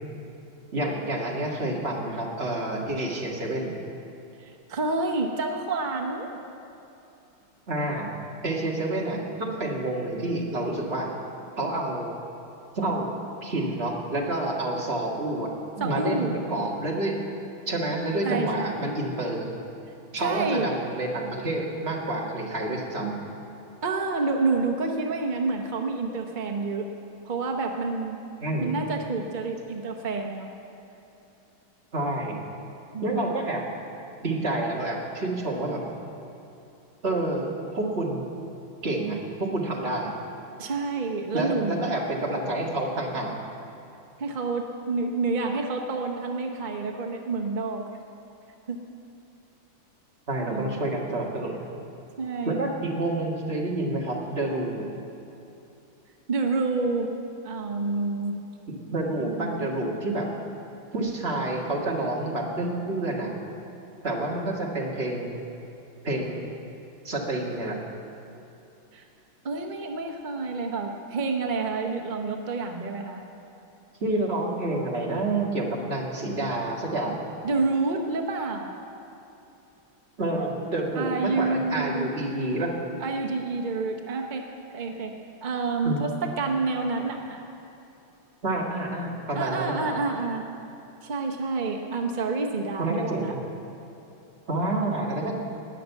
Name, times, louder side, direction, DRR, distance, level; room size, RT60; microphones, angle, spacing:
voice 1, 0.7-3.7 7.7-8.1 8.4-11.1 11.6-12.1 12.7-13.1 13.4-17.2 17.7-19.5 20.1-23.1 28.4-28.7 31.9-32.4 33.0-33.6 34.2-35.8 37.0-38.2 38.8-40.1 41.3-43.3 50.3-51.6 52.5-54.9 58.7-60.3 60.9-63.3 64.0-65.4 66.0-66.4 67.0-67.8 74.0-77.3 80.2-82.7 85.8-86.0 88.4-89.9 92.8-93.4 94.5-95.3, right 2 dB, 30° right, -2 dB, 1.9 m, -28 dB
voice 2, 4.4-6.3 15.8-16.4 18.2-18.9 20.2-20.8 23.8-26.9 27.2-28.2 28.6-30.5 32.9-33.2 40.6-42.0 44.2-47.9 48.7-48.8 50.4-50.9 52.2-52.6 56.3-57.1 57.4-58.4 59.2-59.7 68.9-69.1 69.4-73.2 77.4-78.7 80.9-82.1 83.0-84.4 84.7-85.1 85.4-87.4 89.3-90.5 91.0-93.3, right 3 dB, 60° right, 2 dB, 0.5 m, -28 dB
19.0 x 6.6 x 8.1 m, 2.8 s
omnidirectional pair, 2.2 m